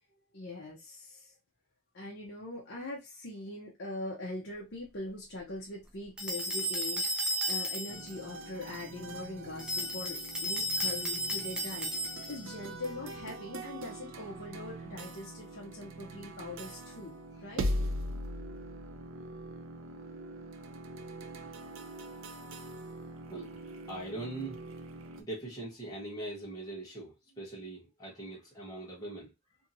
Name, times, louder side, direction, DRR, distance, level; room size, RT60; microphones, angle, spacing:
voice 1, 0.3-1.3 1.9-17.7, left 2 dB, 50° left, 0.6 m, -42 dB
sound 1, 6.2-8.1 9.6-12.5, equal, 5° right, 0.4 m, -33 dB
sound 2, 7.9-25.2, right 1 dB, 60° right, 0.5 m, -41 dB
voice 2, 23.3-24.6 25.2-29.3, right 2 dB, 15° left, 0.9 m, -41 dB
2.7 x 2.7 x 2.5 m
head